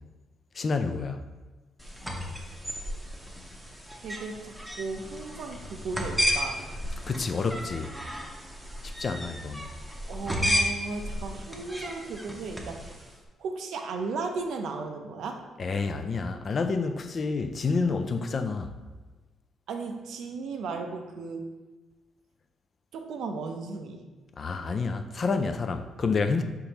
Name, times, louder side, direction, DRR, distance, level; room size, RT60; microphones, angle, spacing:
voice 1, 0.6-1.3 7.1-7.9 8.8-9.7 15.6-18.7 24.4-26.4, left 4 dB, 45° left, 0.3 m, -29 dB
sound 1, 1.8-13.1, equal, 5° right, 0.7 m, -33 dB
voice 2, 4.0-6.6 10.1-13.0 13.4-15.4 19.7-21.5 22.9-24.0, right 4 dB, 75° right, 0.5 m, -35 dB
5.2 x 3.5 x 2.9 m
cardioid pair, 90°, 0 cm